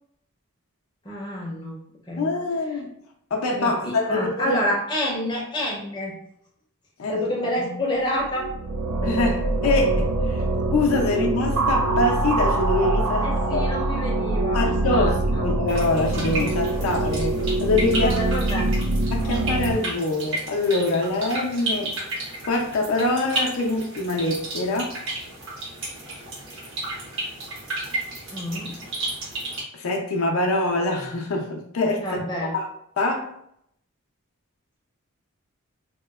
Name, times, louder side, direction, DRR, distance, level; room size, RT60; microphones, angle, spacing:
voice 1, 1.0-1.8 2.1-2.3 3.6-6.1 7.1-8.5 10.4-10.5 13.2-15.4 18.0-18.7 28.3-28.8 32.0-32.5, equal, 20° left, -3 dB, 0.5 m, -28 dB
voice 2, 2.2-2.9 3.3-4.6 7.0-7.8 9.0-10.4 10.7-13.7 14.5-18.1 19.1-22.0 22.4-25.0 29.7-32.2 32.5-32.7 33.0-33.3, left 2 dB, 75° left, 1 dB, 0.5 m, -24 dB
sound 1, 8.1-19.7, right 2 dB, 85° right, 0.4 m, -24 dB
sound 2, 15.7-29.6, right 1 dB, 60° right, 0.8 m, -33 dB
2.9 x 2.1 x 2.3 m, 0.71 s
head